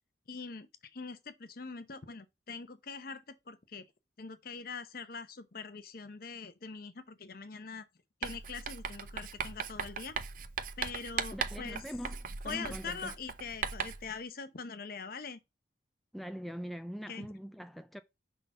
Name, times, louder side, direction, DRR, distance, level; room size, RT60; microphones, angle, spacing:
voice 1, 0.3-3.8 4.2-7.9 8.2-10.2 10.8-11.8 12.4-15.4 17.1-17.3, left 5 dB, 55° left, 0.8 m, -43 dB
Writing, 8.2-14.1, right 6 dB, 50° right, 0.5 m, -38 dB
voice 2, 11.3-13.1 16.1-18.0, equal, ahead, 0.3 m, -42 dB
5.7 x 3.9 x 5.3 m
head